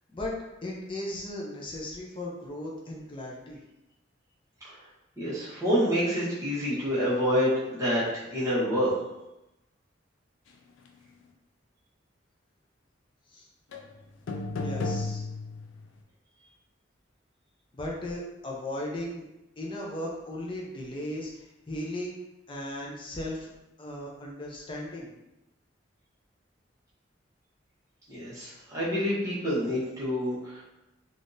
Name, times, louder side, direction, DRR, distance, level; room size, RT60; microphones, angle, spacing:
voice 1, 0.6-3.6 13.3-13.5 14.6-15.3 17.7-19.2 19.6-22.2 22.5-23.5 23.8-25.1, left 1 dB, 25° left, -2 dB, 0.5 m, -36 dB
voice 2, 5.2-8.9 28.1-30.6, equal, 15° right, -9 dB, 1.0 m, -27 dB
sound 1, 13.7-13.9 14.3-15.9, left 3 dB, 85° left, 0.4 m, -33 dB
3.5 x 2.4 x 2.6 m, 0.94 s
head